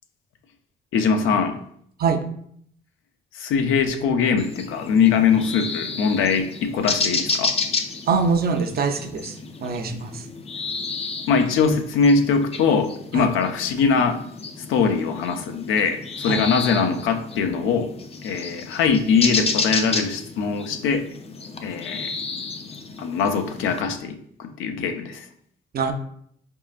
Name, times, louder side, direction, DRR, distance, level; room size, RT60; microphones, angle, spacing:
voice 1, 0.9-1.6 3.3-7.5 11.3-14.2 14.7-17.9 18.2-21.1 21.6-22.1 23.0-25.3, left 5 dB, 85° left, 6 dB, 0.5 m, -22 dB
sound 1, 4.4-23.8, left 4 dB, 30° left, 0.4 m, -31 dB
voice 2, 8.1-10.3 13.1-13.3 16.2-16.4 25.7-25.9, right 5 dB, 50° right, 6 dB, 0.5 m, -24 dB
4.1 x 3.6 x 2.4 m, 0.67 s
cardioid pair, 90°, 20 cm